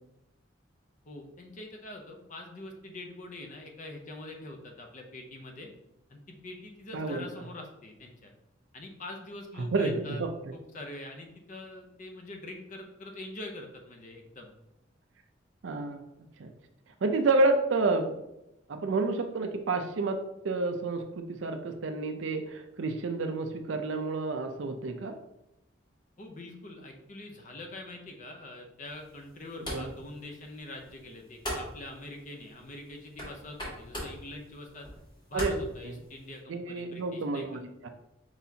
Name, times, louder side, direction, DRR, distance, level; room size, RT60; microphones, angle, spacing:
voice 1, 1.1-5.7 6.1-8.3 8.7-10.2 10.5-14.5 26.2-34.9 35.3-37.5, left 2 dB, 40° left, 3 dB, 0.6 m, -44 dB
voice 2, 6.9-7.2 9.7-10.5 15.6-16.0 16.4-16.5 17.0-18.2 18.7-25.2 29.7-29.9 35.3-35.6 35.8-36.0 36.5-37.9, right 3 dB, 80° right, 6 dB, 0.5 m, -29 dB
sound 1, 28.8-36.4, equal, 25° left, 1.5 m, -42 dB
4.6 x 4.2 x 2.8 m, 0.87 s
head